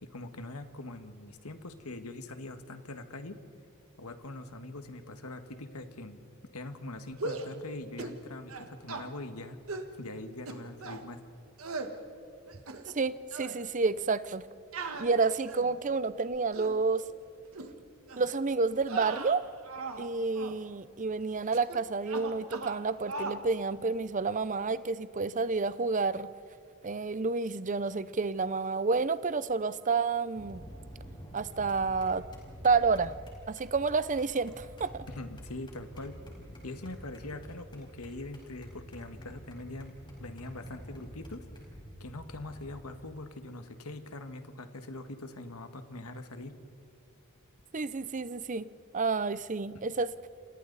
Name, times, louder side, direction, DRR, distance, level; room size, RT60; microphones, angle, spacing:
voice 1, 0.0-3.4 4.0-6.2 6.5-9.6 10.0-11.2 35.1-36.2 36.6-41.4 42.0-46.6, left 2 dB, 85° left, 8 dB, 1.6 m, -43 dB
sound 1, 7.1-7.5 8.0-8.2 8.5-9.1 9.7-9.9 10.5-11.0 11.6-11.9 12.5-13.0 13.3-13.6 14.7-15.8 16.3-16.8 17.5-17.7 18.1-18.3 18.8-20.1 20.3-20.6 21.5-21.8 22.0-22.8 23.1-23.4, right 3 dB, 75° right, 1.6 m, -39 dB
voice 2, 12.9-14.4 15.0-17.0 18.2-19.5 20.0-26.3 26.8-30.6 31.3-32.2 32.6-33.1 33.5-35.1 47.7-48.7 48.9-50.1, right 4 dB, 35° right, 15 dB, 0.6 m, -29 dB
sound 2, 30.4-43.0, equal, 20° left, 4.9 m, -48 dB
29.5 x 27.5 x 4.1 m, 2.6 s
head